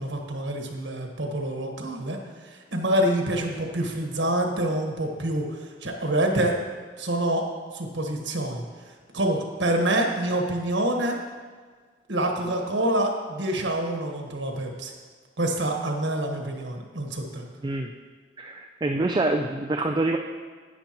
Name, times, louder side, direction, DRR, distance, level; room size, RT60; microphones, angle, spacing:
voice 1, 0.0-6.6 7.0-7.4 7.7-8.6 9.1-11.2 12.1-14.9 15.4-17.4, right 1 dB, 90° right, 2 dB, 1.4 m, -26 dB
voice 2, 18.4-20.2, right 2 dB, 25° right, 4 dB, 0.4 m, -26 dB
11.0 x 8.9 x 3.0 m, 1.5 s
head